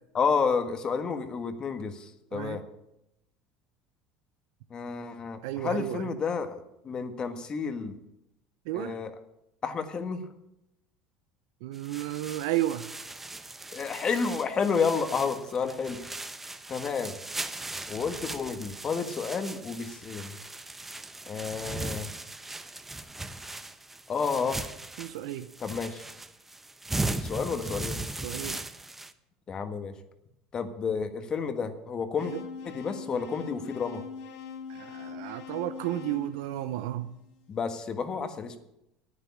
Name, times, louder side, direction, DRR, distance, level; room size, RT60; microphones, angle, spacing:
voice 1, 0.1-2.6 4.7-8.0 8.7-9.1 9.6-10.2 13.7-16.0 16.7-17.1 17.9-20.4 21.3-22.1 24.1-24.6 25.6-26.1 27.1-28.0 29.5-29.9 30.5-32.3 32.6-34.0 37.5-38.6, left 5 dB, 35° left, 8 dB, 1.6 m, -30 dB
voice 2, 5.4-6.1 8.7-8.9 11.6-12.9 25.0-25.5 28.2-28.6 32.3-32.4 34.7-37.1, right 14 dB, 80° right, 11 dB, 0.6 m, -32 dB
sound 1, 11.7-29.1, right 2 dB, 10° right, 0.8 m, -38 dB
sound 2, 32.2-37.3, left 6 dB, 80° left, 2.4 m, -42 dB
9.8 x 9.7 x 8.6 m, 0.85 s
supercardioid pair, 100°, 2 cm